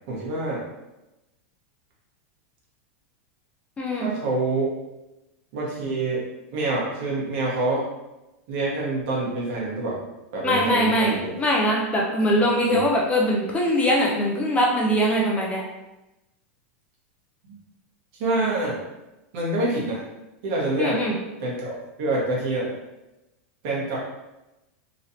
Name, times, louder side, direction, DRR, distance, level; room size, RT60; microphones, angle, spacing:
voice 1, 0.1-0.6 3.9-4.7 5.5-6.2 6.5-7.9 8.5-10.0 10.3-11.3 12.7-12.8 18.2-18.8 19.3-20.0 20.4-21.0 21.4-22.7 23.6-24.0, right 2 dB, 55° right, -4 dB, 1.2 m, -26 dB
voice 2, 3.8-4.1 10.4-15.6 20.8-21.1, equal, 20° left, -2 dB, 0.4 m, -22 dB
3.1 x 2.4 x 2.8 m, 0.98 s
supercardioid pair, 135°, 7 cm